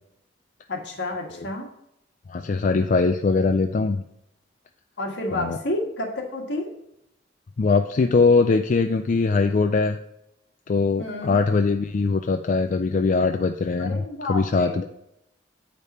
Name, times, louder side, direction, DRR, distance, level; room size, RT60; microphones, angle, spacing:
voice 1, 0.7-1.7 5.0-6.7 11.0-11.4 13.8-14.8, left 2 dB, 75° left, 0 dB, 1.7 m, -30 dB
voice 2, 2.3-4.0 5.3-5.6 7.6-10.0 10.7-14.8, left 4 dB, 45° left, 6 dB, 0.4 m, -21 dB
8.2 x 5.2 x 4.2 m, 0.80 s
head